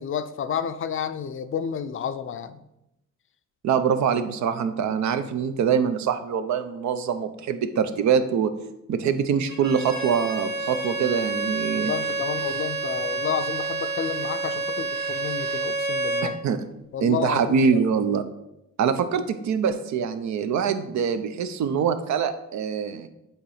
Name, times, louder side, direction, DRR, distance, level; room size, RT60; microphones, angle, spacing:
voice 1, 0.0-2.6 11.7-16.4 16.9-17.8, left 8 dB, 45° left, 11 dB, 0.4 m, -30 dB
voice 2, 3.6-8.5 8.9-11.9 16.4-16.6 17.0-18.2 18.8-23.1, right 7 dB, 65° right, 10 dB, 0.6 m, -24 dB
Bowed string instrument, 9.5-16.3, right 3 dB, 35° right, 1.7 m, -29 dB
7.9 x 3.1 x 4.9 m, 0.88 s
cardioid pair, 90°, 30 cm